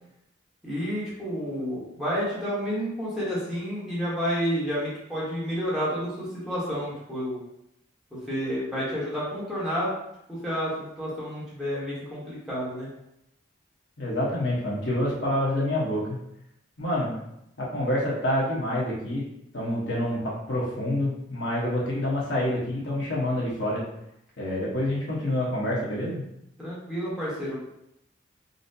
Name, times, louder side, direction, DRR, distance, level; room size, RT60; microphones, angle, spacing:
voice 1, 0.6-7.4 8.3-9.9 10.3-12.9 26.6-27.6, equal, ahead, -9 dB, 1.0 m, -30 dB
voice 2, 14.0-16.2 16.8-17.1 17.6-19.2 19.5-23.8 24.4-26.2, left 1 dB, 70° left, -6 dB, 1.1 m, -27 dB
4.0 x 2.1 x 2.7 m, 0.80 s
head